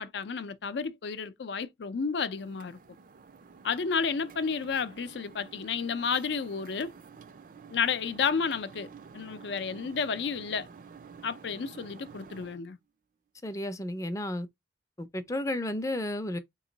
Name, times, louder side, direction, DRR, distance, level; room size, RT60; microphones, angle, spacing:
voice 1, 0.0-2.8 3.6-6.9 7.7-10.7 11.2-12.8, left 5 dB, 70° left, 0.5 m, -31 dB
sound 1, 2.4-12.6, right 6 dB, 45° right, 0.4 m, -50 dB
voice 2, 13.4-14.5 15.0-16.4, left 1 dB, 15° left, 0.4 m, -32 dB
3.7 x 3.0 x 3.9 m
head